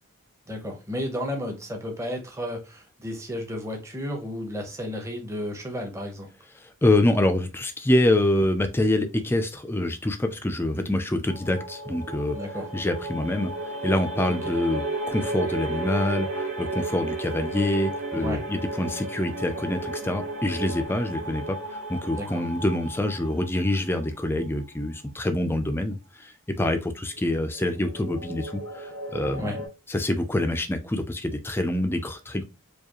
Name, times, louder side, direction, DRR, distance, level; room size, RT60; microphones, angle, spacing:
voice 1, 0.5-6.3 12.3-12.7 18.2-18.4 22.1-22.4 29.4-29.6, left 1 dB, 15° right, 2 dB, 0.7 m, -33 dB
voice 2, 6.8-12.4 12.7-13.5 13.8-26.3 26.6-32.4, left 1 dB, 10° left, 7 dB, 0.3 m, -26 dB
sound 1, 11.3-24.4 27.2-29.7, right 2 dB, 60° right, 2.2 m, -34 dB
4.8 x 2.3 x 2.9 m, 0.30 s
head